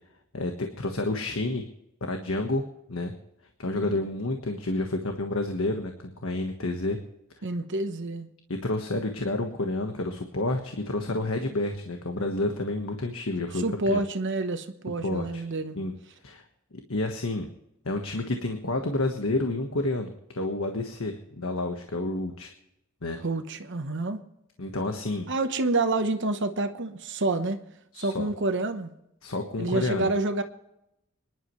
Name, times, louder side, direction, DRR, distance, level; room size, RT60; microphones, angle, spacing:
voice 1, 0.3-1.6 2.0-2.6 2.9-3.1 3.6-7.0 8.5-14.0 15.0-15.4 15.7-15.9 16.2-16.4 16.7-17.5 17.8-22.5 23.0-23.2 24.6-25.3 27.9-28.3 29.2-30.1, left 2 dB, 75° left, 4 dB, 1.4 m, -29 dB
voice 2, 7.4-8.3 13.6-15.8 23.2-24.2 25.3-27.6 28.0-28.9 29.6-30.4, right 2 dB, 60° right, 8 dB, 1.1 m, -28 dB
25.5 x 11.0 x 3.2 m, 0.82 s
head